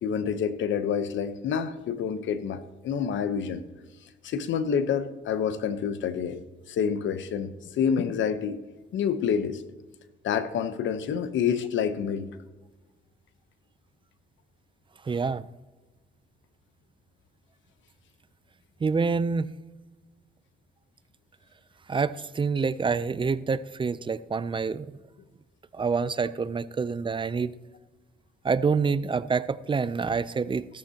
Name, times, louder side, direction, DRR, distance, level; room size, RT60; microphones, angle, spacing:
voice 1, 0.0-3.6 4.2-6.4 6.7-8.6 8.9-9.6 10.2-12.3, left 7 dB, 70° left, 11 dB, 1.0 m, -28 dB
voice 2, 15.1-15.4 18.8-19.5 21.9-24.9 25.7-27.5 28.4-30.7, right 5 dB, 25° right, 15 dB, 0.5 m, -27 dB
16.0 x 13.5 x 2.9 m, 1.2 s
cardioid pair, 90°, 20 cm